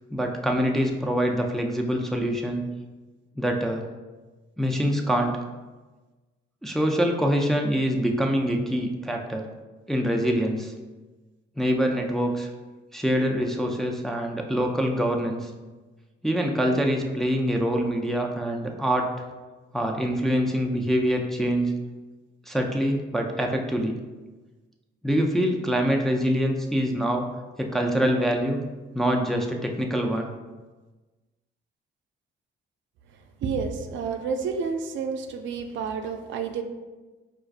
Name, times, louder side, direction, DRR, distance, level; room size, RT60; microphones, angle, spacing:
voice 1, 0.1-2.6 3.4-3.9 4.6-5.4 6.6-9.4 9.9-10.7 11.6-12.5 12.9-15.5 16.2-19.1 19.7-21.7 22.5-23.9 25.0-27.3 27.6-28.6 28.9-30.3, equal, ahead, 1 dB, 0.3 m, -25 dB
voice 2, 33.4-36.6, right 5 dB, 70° right, 5 dB, 0.4 m, -30 dB
4.5 x 2.4 x 2.4 m, 1.2 s
cardioid pair, 90°, 20 cm